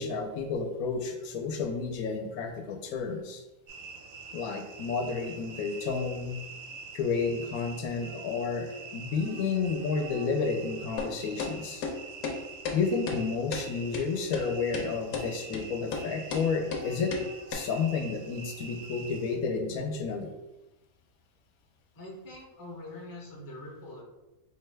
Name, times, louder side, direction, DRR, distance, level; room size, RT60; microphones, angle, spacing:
voice 1, 0.0-3.4 4.3-6.4 6.9-11.8 12.7-17.1 17.5-20.3, left 5 dB, 90° left, 4 dB, 1.1 m, -31 dB
sound 1, 3.7-19.4, right 4 dB, 70° right, 0.5 m, -45 dB
sound 2, 11.0-11.1 11.4-11.5 11.8-11.9 12.2-12.4 12.6-12.8 13.1-13.2 13.5-13.6 13.9-14.0 14.3-14.4 14.7-14.9 15.1-15.3 15.5-15.6 15.9-16.0 16.3-16.4 16.7-16.8 17.1-17.2 17.5-17.6, left 5 dB, 70° left, 1.0 m, -33 dB
voice 2, 21.9-24.0, left 1 dB, 30° left, -2 dB, 0.4 m, -44 dB
4.3 x 2.2 x 3.2 m, 1.0 s
omnidirectional pair, 1.5 m